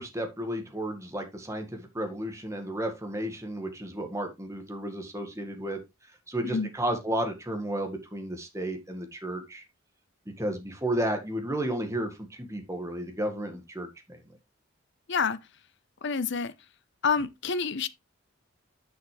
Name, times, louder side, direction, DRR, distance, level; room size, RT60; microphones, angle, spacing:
voice 1, 0.0-5.8 6.3-9.6 10.4-14.2, right 1 dB, 15° right, 1.7 m, -33 dB
voice 2, 15.1-15.4 16.0-16.5 17.0-17.9, left 5 dB, 55° left, 0.8 m, -27 dB
10.0 x 5.9 x 3.3 m
head